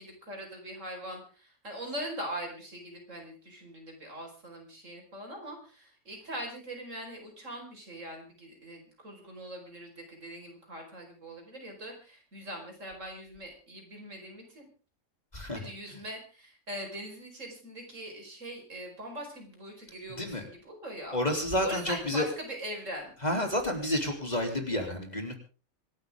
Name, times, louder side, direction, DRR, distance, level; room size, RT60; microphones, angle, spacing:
voice 1, 0.0-14.7 15.5-21.2 21.6-23.1, right 1 dB, 60° right, 2 dB, 5.3 m, -41 dB
voice 2, 20.1-20.5 21.1-22.3 23.2-25.4, left 1 dB, 30° left, 3 dB, 3.3 m, -30 dB
26.5 x 12.5 x 3.7 m, 0.37 s
omnidirectional pair, 1.5 m